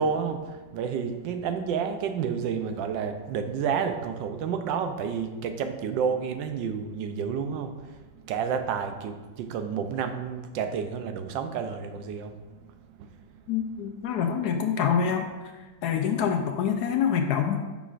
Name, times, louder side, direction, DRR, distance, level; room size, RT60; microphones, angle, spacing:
voice 1, 0.0-12.4 13.0-13.1, right 6 dB, 85° right, 7 dB, 1.3 m, -30 dB
voice 2, 13.5-15.3 15.8-17.6, left 7 dB, 75° left, 5 dB, 1.0 m, -26 dB
9.0 x 6.1 x 2.5 m, 1.3 s
omnidirectional pair, 2.0 m